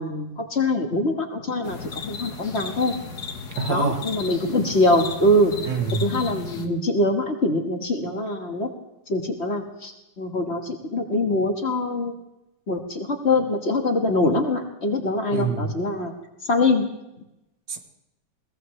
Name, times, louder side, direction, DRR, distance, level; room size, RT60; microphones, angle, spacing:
voice 1, 0.0-3.0 3.7-5.5 6.0-8.7 9.1-12.1 12.7-16.1 16.4-16.9, left 1 dB, 40° left, 4 dB, 1.7 m, -23 dB
sound 1, 1.6-6.7, left 4 dB, 65° left, 2.0 m, -35 dB
voice 2, 3.6-4.0 5.7-6.1 15.3-15.7 17.7-17.8, right 4 dB, 80° right, 5 dB, 2.1 m, -25 dB
21.5 x 17.0 x 3.2 m, 0.89 s
omnidirectional pair, 1.9 m